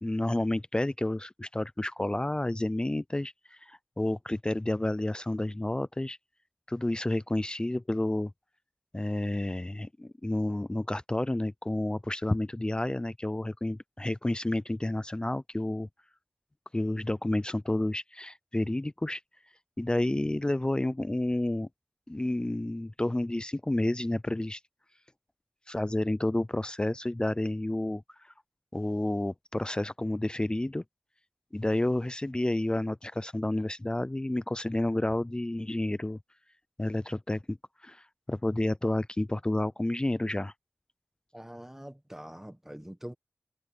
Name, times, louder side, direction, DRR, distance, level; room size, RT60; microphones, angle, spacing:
voice 1, 0.0-6.2 6.7-8.3 8.9-15.9 16.7-19.2 19.8-21.7 22.1-24.6 25.7-28.3 28.7-30.8 31.5-36.2 36.8-37.6 37.8-40.5, left 1 dB, 20° left, 0.4 m, -30 dB
voice 2, 41.3-43.1, equal, 10° right, 1.5 m, -44 dB
wide cardioid pair, 80°, 5 cm